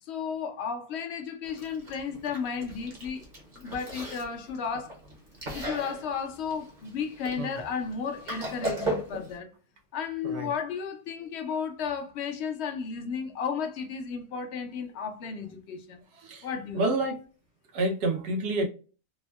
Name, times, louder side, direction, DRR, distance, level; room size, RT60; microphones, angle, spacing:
voice 1, 0.0-3.2 3.5-5.0 5.5-9.5 9.9-16.0 16.4-16.8, left 6 dB, 60° left, 0.7 m, -33 dB
Chewing mastication, 1.4-9.4, right 1 dB, 40° right, 0.8 m, -38 dB
voice 2, 16.1-16.5 16.7-17.2 17.7-18.7, right 2 dB, 90° right, 1.3 m, -28 dB
3.5 x 2.1 x 2.2 m
omnidirectional pair, 1.7 m